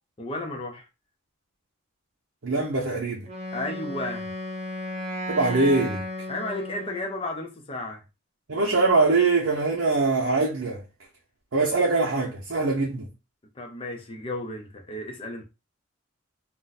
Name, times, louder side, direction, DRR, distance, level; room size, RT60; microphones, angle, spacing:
voice 1, 0.2-0.9 3.5-4.3 6.3-8.0 11.8-11.9 13.5-15.4, left 2 dB, 25° left, 0.5 m, -33 dB
voice 2, 2.4-3.3 5.3-6.0 8.5-10.8 11.5-13.1, right 3 dB, 75° right, 0.7 m, -23 dB
Wind instrument woodwind instrument, 3.3-7.2, equal, 30° right, 0.5 m, -34 dB
2.4 x 2.2 x 3.9 m
head